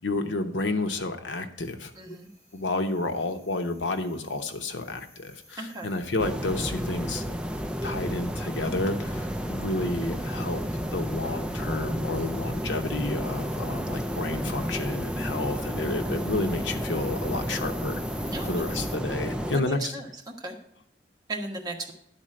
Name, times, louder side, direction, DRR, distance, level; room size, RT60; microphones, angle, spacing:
voice 1, 0.0-2.2 2.5-7.4 7.8-18.0 18.4-20.0, left 2 dB, 85° left, 7 dB, 1.0 m, -31 dB
sound 1, 1.8-19.0, equal, 15° left, 2.0 m, -49 dB
voice 2, 2.0-2.3 5.6-5.9 18.3-18.7 19.6-20.5 21.3-21.9, right 2 dB, 20° right, 0 dB, 1.3 m, -36 dB
sound 2, 6.2-19.6, equal, 5° right, 0.4 m, -31 dB
11.0 x 4.2 x 7.6 m, 0.74 s
head